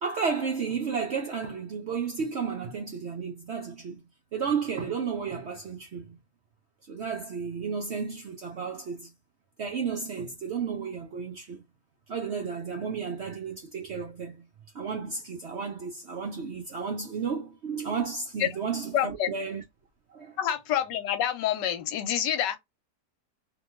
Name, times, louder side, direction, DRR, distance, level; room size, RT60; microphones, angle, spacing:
voice 1, 0.0-4.0 4.3-6.2 6.9-9.1 9.6-11.6 12.1-14.4 14.7-19.6 20.1-20.4, right 6 dB, 75° right, 0.6 m, -32 dB
voice 2, 18.9-19.3 20.4-22.6, left 10 dB, 80° left, 1.3 m, -27 dB
2.8 x 2.2 x 2.9 m
omnidirectional pair, 1.9 m